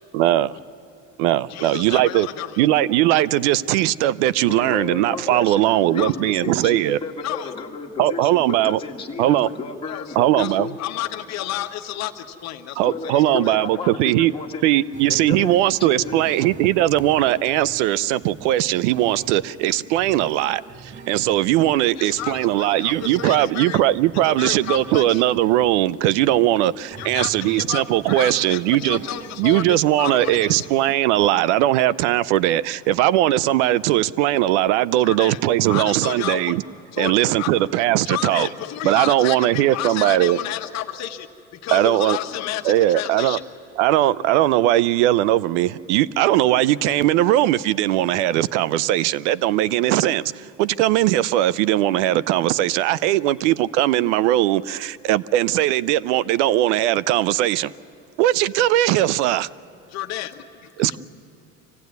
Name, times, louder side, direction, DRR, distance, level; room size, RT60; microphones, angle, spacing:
voice 1, 0.1-0.5 1.2-2.3 2.6-7.0 8.0-8.8 9.2-9.5 10.2-10.7 12.8-14.3 14.6-29.0 29.4-36.6 37.0-38.5 38.8-40.4 41.7-42.2 42.6-43.4 43.8-57.7 58.2-59.5 60.8-61.0, right 14 dB, 85° right, 0.6 m, -19 dB
voice 2, 1.5-2.6 6.0-6.1 7.2-7.5 9.9-10.0 10.4-13.4 22.0-23.8 24.2-25.2 27.0-29.6 30.0-30.7 35.0-35.4 35.7-36.5 36.9-37.5 38.0-41.3 41.6-43.4 59.9-61.0, left 12 dB, 50° left, 1.2 m, -31 dB
voice 3, 4.5-10.7 12.9-14.7 15.1-16.5, left 4 dB, 15° left, 2.0 m, -33 dB
sound 1, 14.9-30.9, right 5 dB, 30° right, 1.3 m, -43 dB
25.0 x 16.5 x 9.4 m
supercardioid pair, 125°, 34 cm